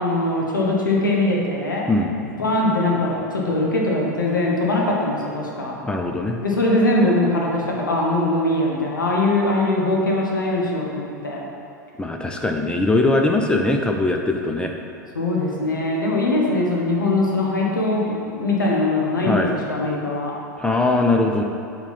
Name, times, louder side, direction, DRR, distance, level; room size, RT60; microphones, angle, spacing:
voice 1, 0.0-1.8 2.4-5.7 6.4-11.4 15.1-20.3, left 2 dB, 80° left, -3 dB, 1.3 m, -21 dB
voice 2, 5.8-6.4 12.0-14.7 19.2-19.5 20.6-21.4, left 2 dB, 10° left, 2 dB, 0.5 m, -21 dB
7.1 x 3.8 x 5.8 m, 2.5 s
figure-of-eight pair, 90°, 10 cm